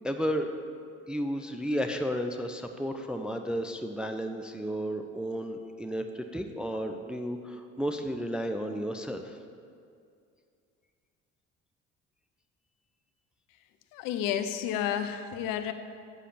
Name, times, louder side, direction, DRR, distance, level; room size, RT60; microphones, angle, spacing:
voice 1, 0.0-0.5 1.1-9.4, equal, ahead, 6 dB, 0.4 m, -33 dB
voice 2, 13.9-15.7, left 9 dB, 55° left, 9 dB, 0.6 m, -31 dB
8.8 x 7.0 x 4.4 m, 2.3 s
figure-of-eight pair, 50°, 39 cm